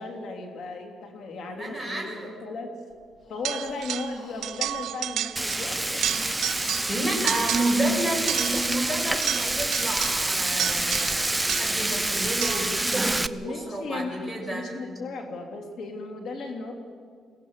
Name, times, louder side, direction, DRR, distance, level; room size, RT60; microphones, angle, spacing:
voice 1, 0.0-2.7 3.3-6.2 13.4-16.7, left 3 dB, 70° left, 4 dB, 3.2 m, -36 dB
voice 2, 1.5-2.3 6.9-14.7, right 1 dB, 5° left, 0 dB, 6.5 m, -30 dB
Breathing, 2.9-7.5, left 2 dB, 50° left, 4.0 m, -51 dB
sound 1, 3.4-4.2 4.4-5.7 5.9-7.0 7.3-7.9 8.3-11.9 12.4-12.8, right 12 dB, 75° right, 0.5 m, -31 dB
Frying (food), 5.4-13.3, right 2 dB, 10° right, 0.7 m, -27 dB
22.5 x 17.0 x 7.5 m, 2.1 s
cardioid pair, 90°, 0 cm